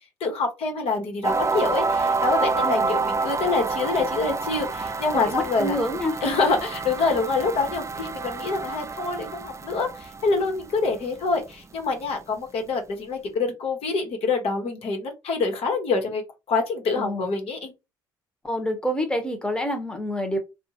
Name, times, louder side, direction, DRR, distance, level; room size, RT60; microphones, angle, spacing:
voice 1, 0.2-5.8 6.2-16.2 16.5-17.7, left 4 dB, 60° left, 3 dB, 1.2 m, -26 dB
sound 1, 1.2-11.1, right 4 dB, 25° right, 0.5 m, -28 dB
voice 2, 5.1-6.1 16.9-17.3 18.4-20.4, equal, 10° left, 5 dB, 1.0 m, -27 dB
3.6 x 2.4 x 2.9 m, 0.25 s
hypercardioid pair, 50°, 11 cm